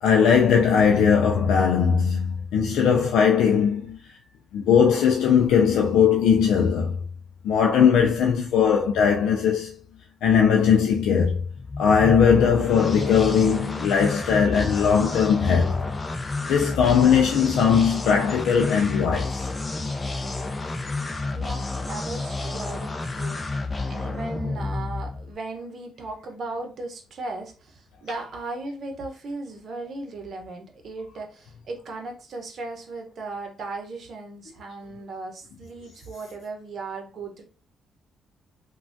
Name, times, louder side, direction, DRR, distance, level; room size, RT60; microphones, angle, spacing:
voice 1, 0.0-4.0 4.5-7.0 7.4-9.7 10.2-11.4 11.8-15.8 16.5-19.5, left 7 dB, 85° left, 0.3 m, -19 dB
sound 1, 11.6-25.3, left 3 dB, 25° left, 0.5 m, -30 dB
voice 2, 21.3-23.4 23.9-37.4, right 3 dB, 55° right, 0.8 m, -37 dB
3.2 x 2.2 x 2.5 m
cardioid pair, 90°, 0 cm